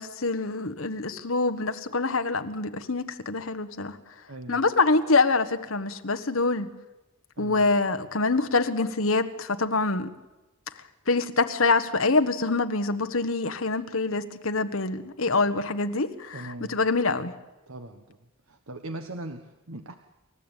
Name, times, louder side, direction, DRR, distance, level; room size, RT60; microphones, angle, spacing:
voice 1, 0.0-4.0 4.5-6.7 7.4-10.1 11.1-17.3, left 3 dB, 70° left, 8 dB, 1.4 m, -25 dB
voice 2, 4.3-4.7 7.4-7.7 16.3-16.8 17.7-18.2 18.5-19.9, right 1 dB, 75° right, 7 dB, 1.3 m, -40 dB
28.0 x 14.5 x 9.1 m, 1.1 s
head